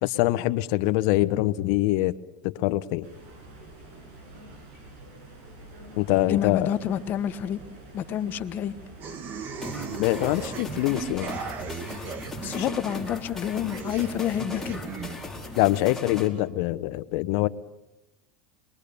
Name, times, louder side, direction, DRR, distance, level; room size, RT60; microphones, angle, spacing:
voice 1, 0.0-2.2 2.4-3.1 6.0-6.7 10.0-11.3 12.5-12.7 15.6-17.5, left 17 dB, 65° left, 14 dB, 1.0 m, -24 dB
sound 1, 3.0-15.9, right 1 dB, 70° right, 7.5 m, -46 dB
voice 2, 6.3-7.6 7.9-8.7 12.4-14.9, left 10 dB, 40° left, 11 dB, 1.3 m, -28 dB
sound 2, 9.0-15.1, right 6 dB, 45° right, 2.4 m, -37 dB
sound 3, 9.6-16.3, left 3 dB, 5° left, 4.3 m, -39 dB
26.5 x 22.5 x 6.9 m, 0.93 s
supercardioid pair, 120°, 5 cm